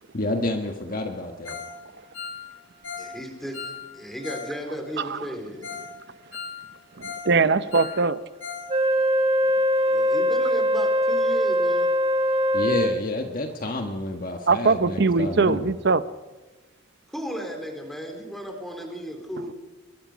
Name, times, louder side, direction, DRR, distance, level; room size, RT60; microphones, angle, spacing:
voice 1, 0.1-1.6 12.5-15.7, left 2 dB, 45° left, 4 dB, 1.4 m, -29 dB
Ringtone, 1.4-1.7 2.0-4.5 4.8-4.9 5.3-5.4 5.6-5.9 6.2-7.3 7.6-8.7 9.0-9.1 9.5-9.6, left 6 dB, 80° left, 7.0 m, -37 dB
voice 2, 3.0-3.6 3.9-5.7 9.8-11.9 17.1-19.5, equal, ahead, 3 dB, 4.0 m, -35 dB
voice 3, 7.0-8.2 14.5-16.0, right 4 dB, 55° right, 14 dB, 0.8 m, -21 dB
Wind instrument woodwind instrument, 8.7-13.1, equal, 35° right, 1.6 m, -22 dB
24.0 x 23.0 x 5.2 m, 1.2 s
head